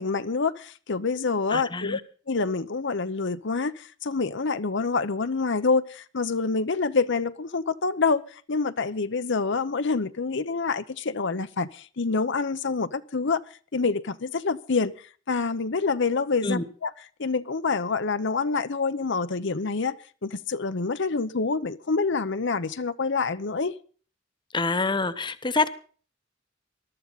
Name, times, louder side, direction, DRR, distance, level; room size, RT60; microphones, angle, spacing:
voice 1, 0.0-2.0 2.3-13.4 13.7-14.9 15.3-16.9 17.2-20.0 20.2-23.7, left 4 dB, 65° left, 0.8 m, -27 dB
voice 2, 1.5-2.0 16.4-16.6 24.5-25.7, left 3 dB, 25° left, 0.9 m, -26 dB
21.0 x 13.0 x 4.1 m
head